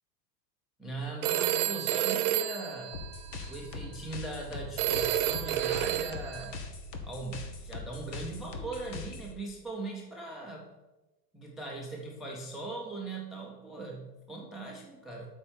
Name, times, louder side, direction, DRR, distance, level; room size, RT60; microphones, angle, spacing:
voice 1, 0.8-3.0 3.5-6.7 7.0-10.7 11.3-15.3, right 2 dB, ahead, 0 dB, 0.4 m, -40 dB
Telephone, 1.2-3.6 4.8-6.5, right 12 dB, 65° right, 0.8 m, -30 dB
sound 1, 2.9-9.3, left 3 dB, 80° left, 1.5 m, -42 dB
8.5 x 4.4 x 7.0 m, 1.1 s
supercardioid pair, 130°, 50 cm